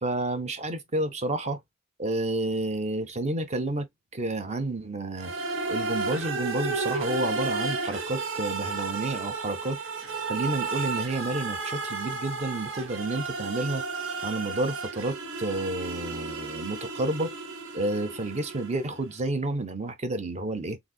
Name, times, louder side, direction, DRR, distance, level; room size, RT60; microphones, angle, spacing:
voice 1, 0.0-1.6 2.0-5.3 5.7-9.8 10.3-13.8 14.2-17.3 17.7-20.8, right 2 dB, 35° right, 0.7 m, -30 dB
sound 1, 5.2-19.0, right 3 dB, 75° right, 0.8 m, -33 dB
4.1 x 2.6 x 2.2 m
head